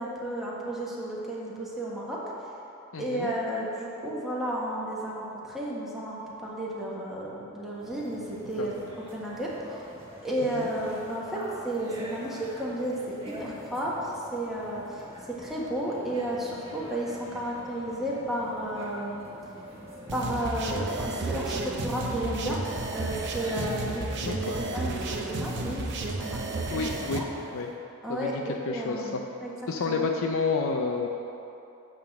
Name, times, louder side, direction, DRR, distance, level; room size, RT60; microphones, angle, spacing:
voice 1, 0.0-2.5 3.0-8.7 9.1-9.8 10.2-13.1 13.4-19.2 20.1-22.6 22.9-27.2 28.0-29.5 29.8-30.1, right 1 dB, ahead, -6 dB, 1.4 m, -33 dB
voice 2, 2.9-3.3 8.6-8.7 10.5-10.7 24.2-24.6 26.7-27.2 27.5-27.7 28.1-28.3 28.7-29.2 29.7-31.1, left 4 dB, 65° left, 2 dB, 0.6 m, -29 dB
sound 1, 7.8-27.7, equal, 25° right, 1.4 m, -45 dB
sound 2, 20.1-27.2, right 2 dB, 55° right, 0.7 m, -32 dB
10.5 x 3.7 x 7.2 m, 2.8 s
head